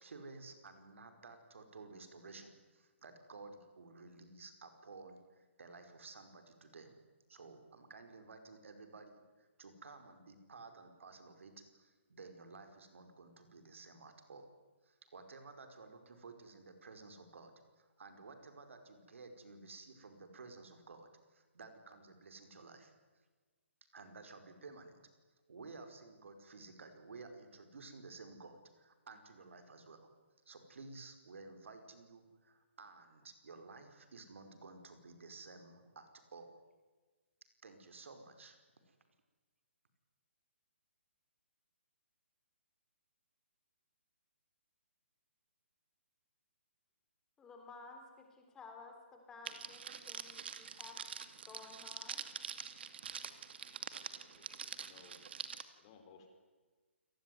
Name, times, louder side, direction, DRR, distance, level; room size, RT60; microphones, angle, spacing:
voice 1, 0.0-6.9 7.3-14.5 14.8-22.9 23.9-25.0 25.5-30.1 30.4-36.6 37.6-38.6 38.9-39.0, right 3 dB, 70° right, 7 dB, 5.2 m, -54 dB
voice 2, 47.4-51.0 51.5-52.3, left 4 dB, 10° left, 3 dB, 3.8 m, -54 dB
Crackle, 49.5-55.6, right 7 dB, 55° right, 2.3 m, -45 dB
voice 3, 54.1-55.2 55.7-56.3, left 5 dB, 25° left, 5 dB, 4.6 m, -61 dB
28.5 x 19.5 x 9.6 m, 1.3 s
hypercardioid pair, 165°, 7 cm